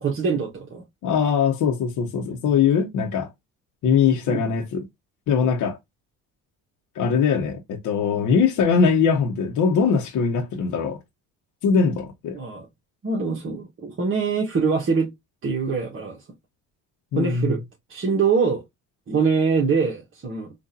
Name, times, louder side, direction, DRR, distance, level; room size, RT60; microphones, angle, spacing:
voice 1, 0.0-0.8 4.3-4.5 12.3-12.7 13.0-15.1 15.4-16.2 17.1-17.6 17.9-18.6 19.1-20.5, right 5 dB, 40° right, 1.3 m, -23 dB
voice 2, 1.0-3.3 3.8-4.8 5.3-5.8 7.0-11.0 11.6-12.4 17.1-17.5, left 6 dB, 65° left, 1.0 m, -21 dB
4.0 x 2.5 x 2.6 m
cardioid pair, 95°, 33 cm